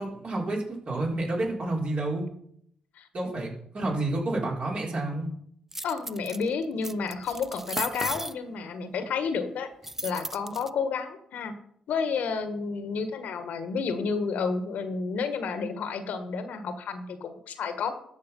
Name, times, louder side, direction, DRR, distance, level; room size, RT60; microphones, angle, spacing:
voice 1, 0.0-2.2 3.1-5.3, right 2 dB, 50° right, -2 dB, 4.5 m, -29 dB
sound 1, 5.7-6.4 6.8-8.3 9.8-10.7, right 1 dB, 15° right, 0.6 m, -35 dB
voice 2, 5.8-9.7 10.0-11.5 11.9-17.9, left 5 dB, 70° left, 9 dB, 1.4 m, -31 dB
13.0 x 6.5 x 5.4 m, 0.69 s
hypercardioid pair, 40°, 3 cm